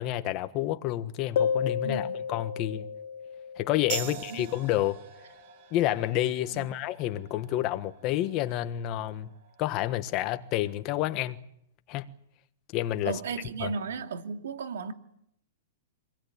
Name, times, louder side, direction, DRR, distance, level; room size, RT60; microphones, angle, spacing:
voice 1, 0.0-2.9 3.6-5.0 5.7-9.3 9.6-11.4 11.9-12.1 12.7-13.2 13.6-13.7, left 13 dB, 30° left, 1.4 m, -29 dB
sound 1, 1.4-4.6, left 7 dB, 60° left, 1.8 m, -32 dB
voice 2, 1.8-2.1 4.0-4.5 6.5-6.7 13.0-14.9, right 5 dB, 80° right, 2.7 m, -35 dB
sound 2, 3.9-11.0, right 8 dB, 50° right, 5.3 m, -44 dB
26.5 x 19.5 x 8.8 m
hypercardioid pair, 155°, 0 cm